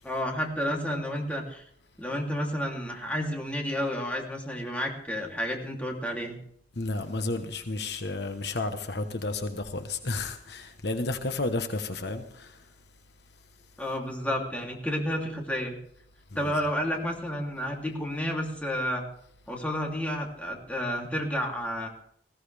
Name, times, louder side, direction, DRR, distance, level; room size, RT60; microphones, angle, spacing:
voice 1, 0.0-1.6 2.0-6.4 13.8-15.7 16.3-19.0 19.5-21.9, equal, 10° left, 2.9 m, -31 dB
voice 2, 6.8-12.6 16.4-16.5, left 2 dB, 70° left, 1.1 m, -32 dB
20.5 x 15.5 x 3.4 m
head